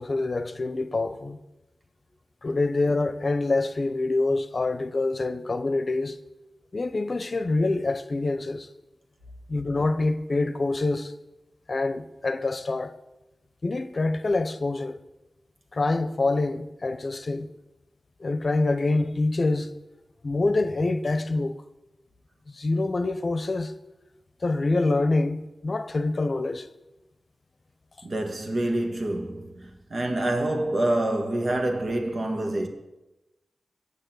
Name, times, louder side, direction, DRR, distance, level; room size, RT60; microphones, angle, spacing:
voice 1, 0.0-1.4 2.4-6.2 6.7-8.7 9.5-11.1 11.7-13.0 13.6-15.0 15.7-17.5 18.2-19.7 20.2-21.6 22.5-23.7 24.4-26.7, left 2 dB, 50° left, 0.7 m, -26 dB
voice 2, 28.0-32.7, right 1 dB, 60° right, 1.6 m, -27 dB
8.8 x 6.7 x 7.8 m
cardioid pair, 55°, 0 cm